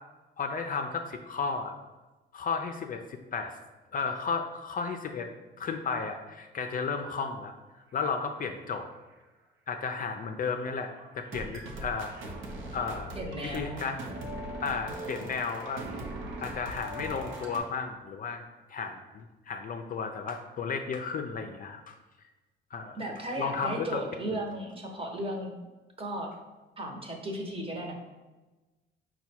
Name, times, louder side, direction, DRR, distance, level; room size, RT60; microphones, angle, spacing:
voice 1, 0.4-1.7 2.3-3.5 3.9-5.3 5.6-7.5 7.9-8.9 9.7-12.1 12.7-13.1 13.5-14.0 14.6-18.4 18.7-21.9 22.7-23.0 23.4-24.0, left 5 dB, 45° left, 5 dB, 0.4 m, -33 dB
sound 1, 10.6-10.7 11.0-17.6, right 1 dB, 80° right, 0.7 m, -40 dB
voice 2, 13.2-13.8 23.0-25.5 26.0-26.3 26.8-27.9, right 1 dB, 30° right, 1 dB, 0.9 m, -35 dB
4.5 x 2.3 x 4.2 m, 1.2 s
cardioid pair, 90°, 20 cm